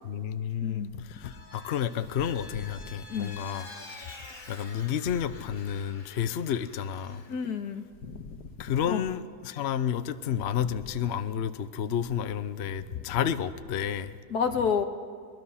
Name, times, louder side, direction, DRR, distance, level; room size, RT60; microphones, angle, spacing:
voice 1, 0.0-3.8 4.5-7.2 8.6-14.2, left 8 dB, 55° left, 12 dB, 0.8 m, -31 dB
Vehicle, 1.1-7.5, left 3 dB, 30° left, 1.6 m, -48 dB
voice 2, 7.3-8.4 8.9-9.0 14.3-14.8, left 6 dB, 80° left, 6 dB, 1.8 m, -30 dB
23.0 x 21.0 x 5.7 m, 2.1 s
omnidirectional pair, 1.7 m